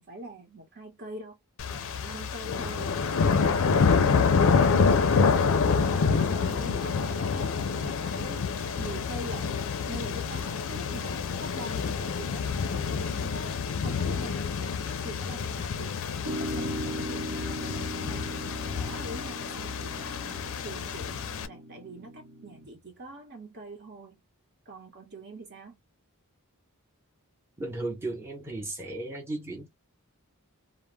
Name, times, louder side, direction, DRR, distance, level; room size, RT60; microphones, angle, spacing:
voice 1, 0.0-1.4 1.7-5.4 5.7-8.5 8.8-16.0 16.3-18.3 18.6-24.2 24.7-25.8, right 1 dB, 50° right, 1.0 m, -44 dB
sound 1, 1.6-21.5, left 5 dB, 60° left, 0.4 m, -27 dB
sound 2, 16.2-22.7, right 1 dB, 70° right, 0.8 m, -38 dB
voice 2, 27.6-29.7, right 2 dB, 10° right, 0.8 m, -35 dB
2.2 x 2.0 x 3.2 m
head